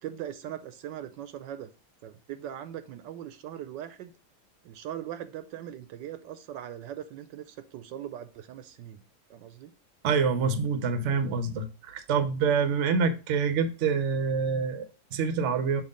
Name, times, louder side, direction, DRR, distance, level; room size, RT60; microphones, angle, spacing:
voice 1, 0.0-1.7 2.0-4.1 4.6-9.0 9.3-9.7, right 10 dB, 75° right, 11 dB, 1.2 m, -40 dB
voice 2, 10.0-15.8, right 5 dB, 55° right, 9 dB, 0.9 m, -26 dB
6.8 x 3.0 x 5.2 m, 0.32 s
omnidirectional pair, 2.0 m